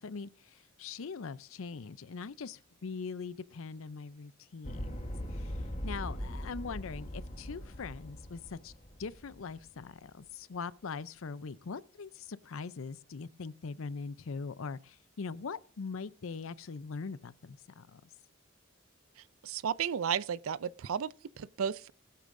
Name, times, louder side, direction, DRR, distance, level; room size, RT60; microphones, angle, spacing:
voice 1, 0.0-4.9 5.3-5.6 5.8-8.7 9.0-18.0, left 5 dB, 75° left, 0.5 m, -42 dB
sound 1, 4.6-9.8, equal, 35° left, 1.2 m, -40 dB
voice 2, 19.4-21.9, right 8 dB, 80° right, 0.4 m, -33 dB
19.5 x 8.3 x 2.6 m
head